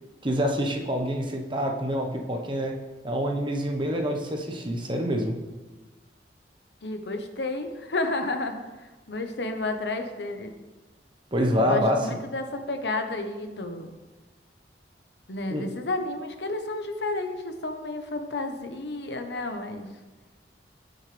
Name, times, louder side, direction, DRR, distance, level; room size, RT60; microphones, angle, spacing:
voice 1, 0.2-2.8 3.0-5.4 11.3-12.2 15.5-15.6, equal, 25° right, 2 dB, 1.1 m, -26 dB
voice 2, 6.8-10.5 11.7-13.9 15.3-19.9, left 2 dB, 70° left, 6 dB, 1.0 m, -31 dB
17.0 x 6.3 x 3.4 m, 1.2 s
head